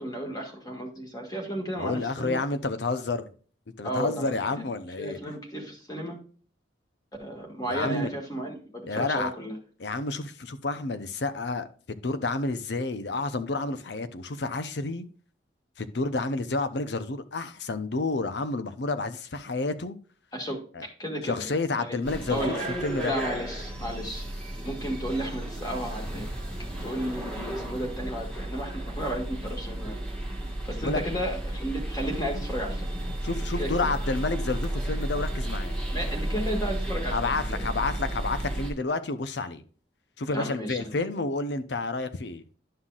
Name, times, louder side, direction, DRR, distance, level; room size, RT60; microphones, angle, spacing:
voice 1, 0.0-2.4 3.8-4.3 5.0-6.2 7.2-9.6 20.3-21.4 21.8-22.0 22.3-22.7 23.0-24.2 24.6-26.3 26.8-29.9 30.7-32.9 33.6-33.7 35.9-37.6 40.3-41.0, equal, 20° left, 1.8 m, -33 dB
voice 2, 1.8-3.3 3.8-5.2 7.7-8.1 8.9-9.3 9.8-15.1 15.8-20.0 20.7-20.9 21.2-22.6 22.8-23.1 30.8-31.0 33.2-35.7 37.1-39.6 40.2-42.4, left 3 dB, 70° left, 0.7 m, -30 dB
sound 1, 22.0-38.7, right 1 dB, 5° left, 1.5 m, -33 dB
11.5 x 5.7 x 2.4 m
head